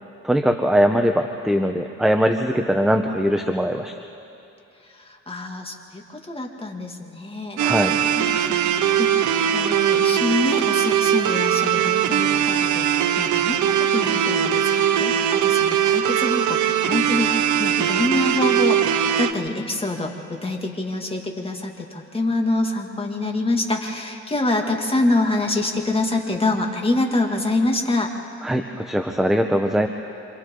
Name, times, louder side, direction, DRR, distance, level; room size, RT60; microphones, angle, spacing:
voice 1, 0.2-3.9 7.6-7.9 28.4-29.9, equal, ahead, 5 dB, 1.0 m, -21 dB
voice 2, 4.8-9.3 9.5-18.8 19.2-28.1, left 2 dB, 20° left, 2 dB, 2.4 m, -26 dB
sound 1, 7.6-19.3, right 9 dB, 75° right, 0.9 m, -20 dB
27.5 x 26.5 x 3.9 m, 2.7 s
cardioid pair, 90°, 30 cm